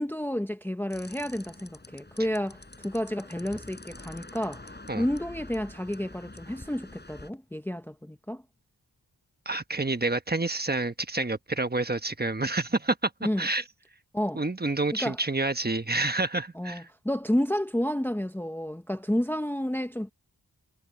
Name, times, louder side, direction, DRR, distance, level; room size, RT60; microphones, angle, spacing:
voice 1, 0.0-8.4 13.2-13.5 14.1-14.4 15.0-15.2 16.5-20.1, equal, 5° left, 0.9 m, -30 dB
sound 1, 0.9-7.3, left 2 dB, 25° left, 4.6 m, -46 dB
voice 2, 9.4-13.6 14.3-16.8, right 2 dB, 25° right, 1.2 m, -28 dB
wide cardioid pair, 70°, 40 cm